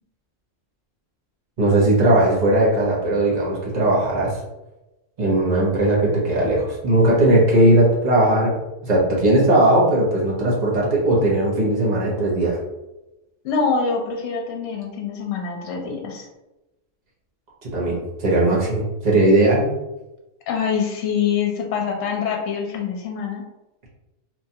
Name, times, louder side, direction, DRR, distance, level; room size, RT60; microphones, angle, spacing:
voice 1, 1.6-4.4 5.2-8.5 8.8-12.6 17.7-19.7, right 1 dB, 40° right, -5 dB, 0.8 m, -18 dB
voice 2, 13.4-16.3 20.5-23.4, left 6 dB, 75° left, 1 dB, 0.9 m, -25 dB
3.0 x 2.3 x 2.7 m, 0.99 s
omnidirectional pair, 1.3 m